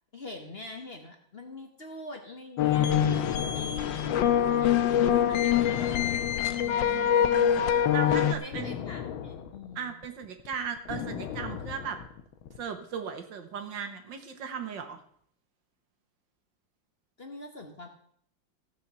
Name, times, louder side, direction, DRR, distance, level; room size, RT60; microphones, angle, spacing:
voice 1, 0.1-6.2 8.1-9.9 17.2-17.9, left 2 dB, 35° left, 4 dB, 1.2 m, -44 dB
sound 1, 2.6-8.3, left 9 dB, 75° left, 1.4 m, -24 dB
sound 2, 3.0-7.4 7.7-12.6, left 8 dB, 90° left, 1.7 m, -39 dB
voice 2, 6.5-8.8 9.8-12.0 12.6-15.0, right 7 dB, 70° right, 7 dB, 1.9 m, -37 dB
15.5 x 5.6 x 6.8 m, 0.64 s
omnidirectional pair, 2.1 m